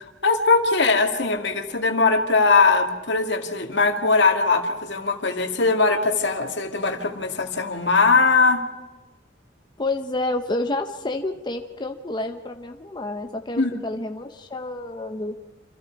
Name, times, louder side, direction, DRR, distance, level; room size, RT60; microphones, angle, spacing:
voice 1, 0.2-8.6 13.6-13.7, left 4 dB, 65° left, 5 dB, 2.4 m, -20 dB
voice 2, 9.8-15.3, left 2 dB, 25° left, 5 dB, 1.0 m, -29 dB
28.0 x 27.0 x 4.8 m, 1.2 s
head